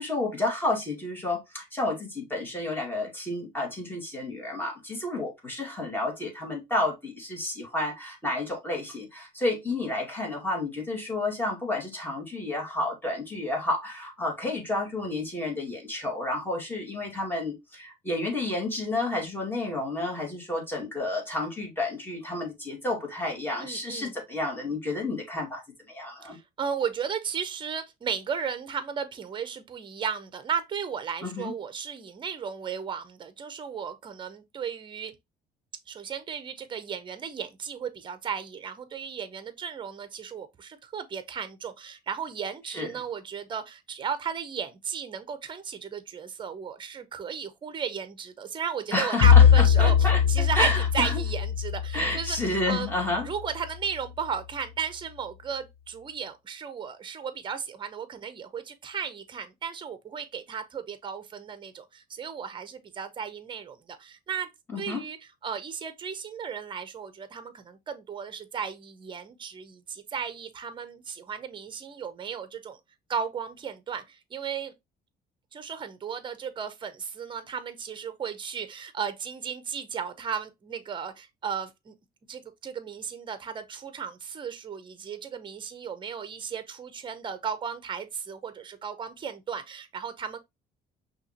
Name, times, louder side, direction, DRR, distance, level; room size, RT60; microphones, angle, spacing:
voice 1, 0.0-25.6 25.9-26.4 31.2-31.5 42.7-42.9 48.9-51.2 51.9-53.3 64.7-65.0, left 2 dB, 10° left, 2.0 m, -30 dB
voice 2, 23.6-24.2 26.2-35.1 35.9-49.9 50.3-52.9 53.2-64.5 64.8-65.2 65.4-72.8 73.1-74.7 75.5-81.9 82.3-90.4, right 7 dB, 30° right, 0.7 m, -35 dB
Bowed string instrument, 49.2-53.4, left 8 dB, 65° left, 0.5 m, -21 dB
5.6 x 2.8 x 2.8 m
cardioid pair, 110°, 17 cm